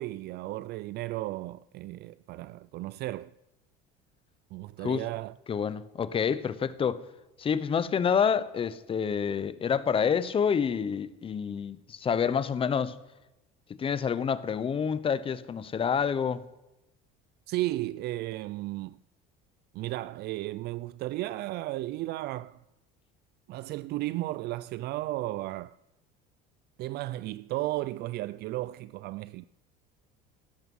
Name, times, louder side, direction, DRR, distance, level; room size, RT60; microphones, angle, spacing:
voice 1, 0.0-3.3 4.5-5.4 17.5-19.0 19.7-22.6 23.5-25.8 26.8-29.5, right 17 dB, 55° right, 0.4 m, -34 dB
voice 2, 5.5-7.0 7.4-12.9 13.7-16.4, left 7 dB, 25° left, 0.8 m, -28 dB
17.0 x 12.5 x 5.5 m
cardioid pair, 120°, 20 cm